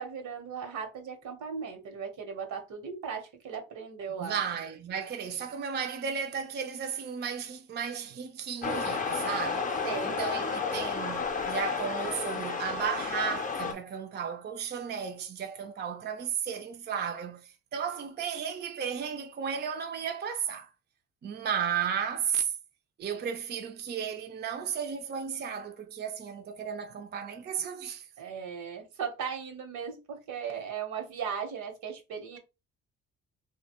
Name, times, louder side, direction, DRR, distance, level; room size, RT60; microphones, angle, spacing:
voice 1, 0.0-4.4 9.8-10.2 28.2-32.4, right 6 dB, 75° right, 1.0 m, -37 dB
voice 2, 4.2-20.7 21.2-22.5 23.0-28.1, right 7 dB, 35° right, 0.4 m, -34 dB
sound 1, 8.6-13.7, left 5 dB, 25° left, 0.6 m, -32 dB
2.8 x 2.2 x 2.8 m
cardioid pair, 90°, 30 cm